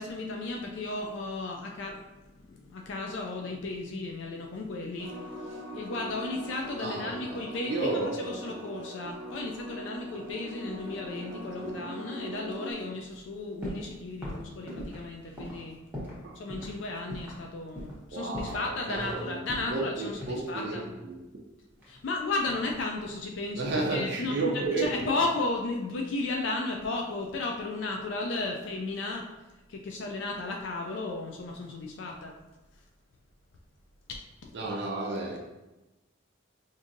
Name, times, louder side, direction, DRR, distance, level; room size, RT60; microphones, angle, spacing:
voice 1, 0.0-15.8 16.3-20.8 21.9-29.3 29.7-32.3 34.4-34.6, left 2 dB, 60° left, 1 dB, 0.3 m, -34 dB
sound 1, 5.0-12.7, equal, 90° right, 0.7 m, -41 dB
voice 2, 6.8-7.4 7.7-8.5 11.6-11.8 14.3-14.4 16.2-16.4 18.1-19.4 19.7-21.2 23.5-24.9 34.5-35.4, right 3 dB, 55° right, -2 dB, 0.5 m, -32 dB
sound 2, 13.6-13.9 14.2-16.2 16.5-16.7 17.1-17.4 17.8-18.0 18.3-19.2 19.5-20.8 21.8-22.7 23.0-23.4, equal, 10° right, 0.9 m, -40 dB
5.0 x 2.6 x 2.5 m, 1.1 s
head